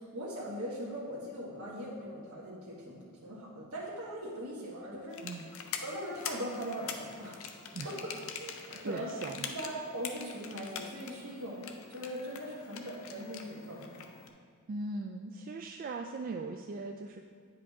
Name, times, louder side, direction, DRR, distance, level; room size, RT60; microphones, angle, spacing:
voice 1, 0.0-5.3 5.8-7.5 7.8-8.1 8.4-9.1 9.5-14.0, equal, 80° right, -6 dB, 1.3 m, -40 dB
sound 1, 5.1-14.3, left 6 dB, 65° left, 0.6 m, -44 dB
voice 2, 8.8-9.5 14.7-17.3, right 3 dB, 40° right, 4 dB, 0.3 m, -39 dB
9.4 x 5.0 x 3.5 m, 2.2 s
head